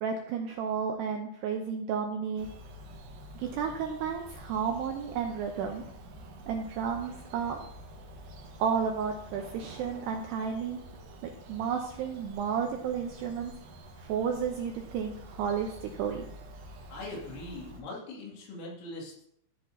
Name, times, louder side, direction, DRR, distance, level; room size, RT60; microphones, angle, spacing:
voice 1, 0.0-2.5 3.4-5.8 6.5-7.6 8.6-10.8 11.5-13.5 14.0-16.2, right 7 dB, 85° right, 2 dB, 2.4 m, -32 dB
Bird vocalization bird call bird song, 2.4-17.8, right 1 dB, 65° right, 2.5 m, -48 dB
voice 2, 16.9-19.2, left 2 dB, 75° left, -3 dB, 4.9 m, -41 dB
15.0 x 7.5 x 2.8 m, 0.73 s
omnidirectional pair, 5.6 m